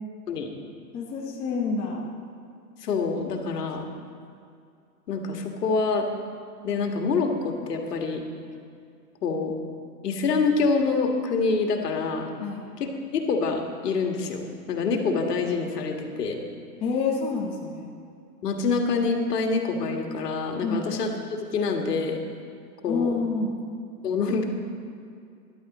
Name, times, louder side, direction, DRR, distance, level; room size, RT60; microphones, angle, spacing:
voice 1, 0.9-2.0 12.4-12.6 16.8-17.9 20.6-20.9 22.9-23.6, left 4 dB, 10° left, -3 dB, 0.8 m, -28 dB
voice 2, 2.8-3.9 5.1-6.1 6.6-8.2 9.2-9.6 10.0-12.3 12.8-16.4 18.4-22.2 22.8-23.1 24.0-24.4, left 4 dB, 70° left, 3 dB, 1.9 m, -26 dB
14.0 x 11.0 x 4.2 m, 2.4 s
hypercardioid pair, 150°, 50 cm